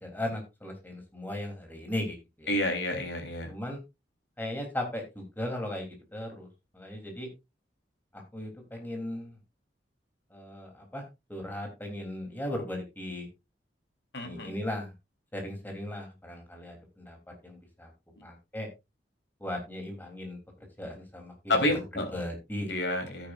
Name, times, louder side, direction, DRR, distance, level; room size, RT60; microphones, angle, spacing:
voice 1, 0.0-2.5 3.5-3.8 4.4-6.5 6.7-7.3 8.1-9.3 10.3-11.0 11.3-13.3 14.2-14.9 15.3-17.2 17.4-17.9 18.2-18.7 19.4-20.4 20.8-21.6 22.1-22.7, left 1 dB, 10° left, 2 dB, 3.3 m, -37 dB
voice 2, 2.5-3.5 14.1-14.5 21.5-22.1 22.7-23.3, left 1 dB, 75° left, 4 dB, 3.6 m, -29 dB
13.0 x 9.8 x 2.6 m, 0.23 s
head